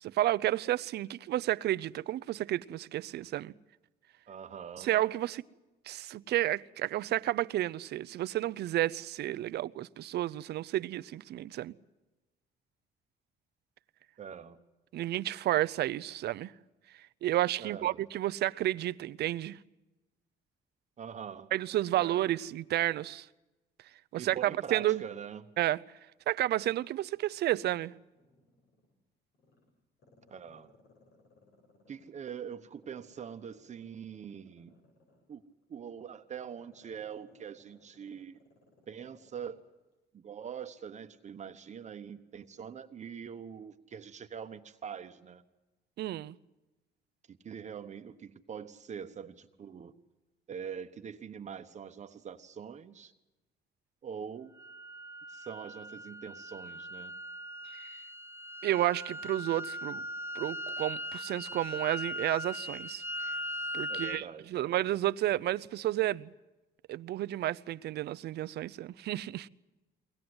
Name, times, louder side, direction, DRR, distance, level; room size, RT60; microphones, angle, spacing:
voice 1, 0.0-3.5 4.8-5.4 5.9-11.7 14.9-16.5 17.2-19.6 21.5-23.3 24.1-25.0 25.6-25.8 26.3-27.9 46.0-46.4 58.6-60.0 60.3-63.0 63.7-66.3 66.9-69.5, right 14 dB, 70° right, 0.7 m, -31 dB
voice 2, 4.3-4.9 14.2-14.6 17.6-18.0 21.0-21.5 21.9-22.3 24.2-25.5 30.3-30.7 31.9-34.7 35.3-35.4 35.7-38.4 38.9-39.6 40.1-45.4 47.3-49.9 50.5-53.1 54.0-54.5 55.3-57.1 63.9-64.8, right 7 dB, 40° right, 1.1 m, -43 dB
Growling, 27.2-28.9 29.3-32.3 32.8-39.6 39.9-40.0, left 2 dB, 70° left, 7.7 m, -64 dB
sound 1, 54.6-64.2, equal, 15° right, 0.8 m, -39 dB
23.0 x 18.5 x 7.9 m
cardioid pair, 125°, 17 cm